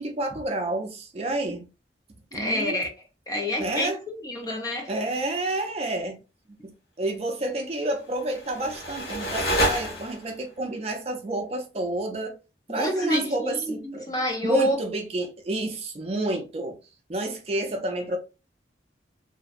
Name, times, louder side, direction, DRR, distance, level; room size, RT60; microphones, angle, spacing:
voice 1, 0.0-1.7 2.3-2.8 3.6-4.0 4.9-6.2 6.6-12.4 12.7-14.1 14.4-16.8 17.1-18.2, right 1 dB, 35° right, 0.4 m, -29 dB
voice 2, 2.3-2.9 3.3-4.9 12.7-14.8, equal, 20° left, 0.5 m, -28 dB
sound 1, 8.1-10.5, equal, 60° left, 1.0 m, -28 dB
2.6 x 2.1 x 2.4 m
head